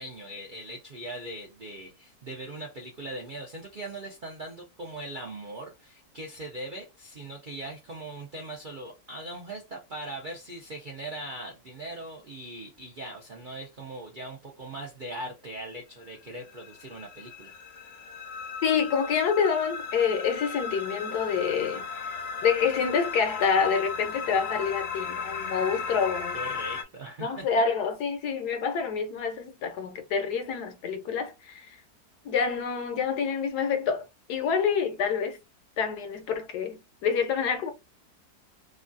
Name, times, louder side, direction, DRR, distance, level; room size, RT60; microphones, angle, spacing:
voice 1, 0.0-17.5 26.3-27.7, right 1 dB, 60° right, 0.5 m, -40 dB
sound 1, 16.3-26.8, left 5 dB, 60° left, 0.9 m, -36 dB
voice 2, 18.6-22.1 22.4-26.4 27.2-31.8 32.2-35.4 35.8-37.7, left 6 dB, 80° left, 1.3 m, -27 dB
3.0 x 2.3 x 2.5 m
omnidirectional pair, 1.7 m